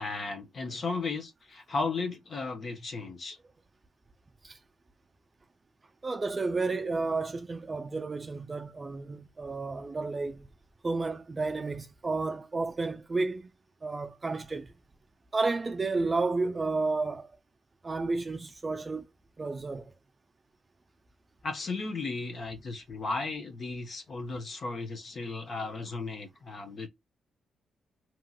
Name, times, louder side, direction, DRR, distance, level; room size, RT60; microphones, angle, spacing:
voice 1, 0.0-3.4 21.4-26.9, left 3 dB, 50° left, 0.7 m, -35 dB
voice 2, 6.0-10.5 10.8-13.5 13.8-14.7 15.3-17.3 17.8-19.1 19.4-19.9, right 3 dB, 30° right, 0.3 m, -31 dB
2.9 x 2.8 x 2.2 m
cardioid pair, 85°, 0 cm